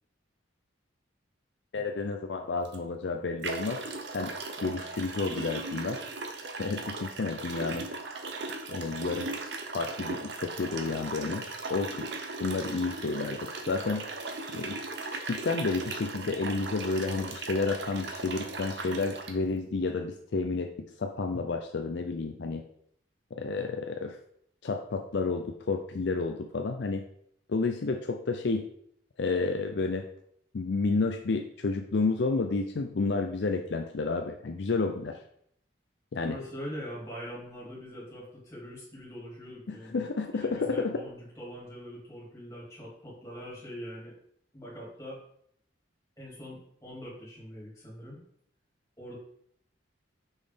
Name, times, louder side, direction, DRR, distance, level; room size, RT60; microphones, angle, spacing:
voice 1, 1.7-3.8 4.1-4.3 4.6-6.0 6.6-7.9 8.7-9.3 9.7-11.4 11.7-12.1 12.4-13.4 13.7-14.0 14.5-14.8 15.1-20.7 21.0-22.6 23.3-24.2 24.6-27.0 27.5-28.6 29.2-30.0 30.5-35.2 36.1-36.4 39.7-40.9, left 3 dB, 60° left, 4 dB, 0.5 m, -30 dB
sound 1, 2.6-2.8 3.4-19.3, right 3 dB, 60° right, 0.8 m, -38 dB
voice 2, 36.2-44.1 44.5-45.2 46.2-48.2 49.0-49.1, equal, 15° left, -6 dB, 2.6 m, -43 dB
6.2 x 5.1 x 3.5 m, 0.67 s
head